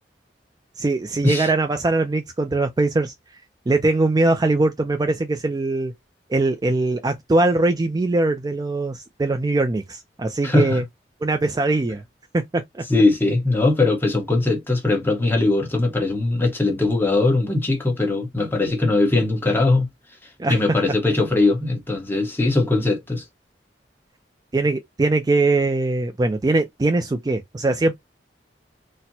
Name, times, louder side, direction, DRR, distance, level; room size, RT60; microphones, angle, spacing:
voice 1, 0.8-3.1 3.7-5.9 6.3-10.8 11.2-12.0 12.3-12.8 20.4-20.6 24.5-28.0, right 2 dB, 20° right, 0.3 m, -21 dB
voice 2, 10.4-10.8 12.9-19.9 20.5-23.2, left 2 dB, 15° left, 1.0 m, -20 dB
4.1 x 2.1 x 2.7 m
head